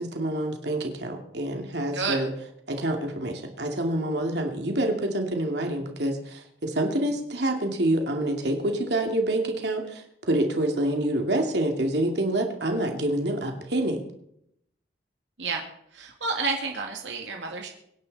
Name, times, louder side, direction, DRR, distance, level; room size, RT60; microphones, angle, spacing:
voice 1, 0.0-2.3 2.7-14.0, right 1 dB, 70° right, 2 dB, 2.6 m, -27 dB
voice 2, 15.9-17.7, right 4 dB, 90° right, 1 dB, 2.2 m, -30 dB
24.5 x 10.5 x 4.2 m, 0.74 s
head